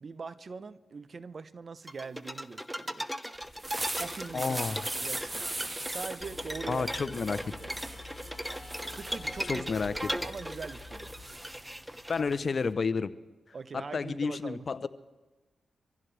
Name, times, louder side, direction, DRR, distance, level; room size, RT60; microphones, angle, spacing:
voice 1, 0.0-3.1 4.0-4.6 4.9-7.9 8.9-9.7 10.1-11.1 13.5-14.7, right 4 dB, 55° right, 13 dB, 0.8 m, -42 dB
sound 1, 1.9-12.4, equal, 5° right, 1.0 m, -38 dB
sound 2, 3.4-12.7, right 2 dB, 25° right, 2.0 m, -40 dB
voice 2, 4.3-4.8 6.7-7.4 9.5-10.1 12.1-13.1 13.7-14.9, left 5 dB, 55° left, 14 dB, 0.8 m, -30 dB
sound 3, 6.2-11.2, left 3 dB, 30° left, 7.5 m, -47 dB
25.0 x 15.5 x 3.4 m, 1.1 s
supercardioid pair, 50°, 0 cm